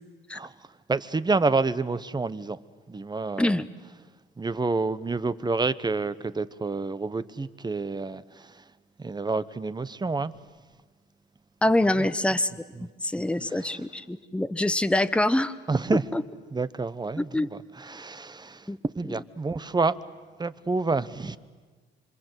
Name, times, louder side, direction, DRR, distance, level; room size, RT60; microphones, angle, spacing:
voice 1, 0.3-2.6 2.9-3.6 4.4-8.7 9.0-10.3 12.0-12.1 12.7-12.9 13.5-13.8 15.7-16.1 16.5-20.0 20.4-21.4, right 3 dB, 20° right, 1.0 m, -29 dB
voice 2, 11.6-12.5 12.8-15.5 16.1-16.2 17.3-17.5 18.7-18.8, left 1 dB, 5° left, 1.0 m, -25 dB
26.5 x 25.5 x 8.1 m
cardioid pair, 90°, 20 cm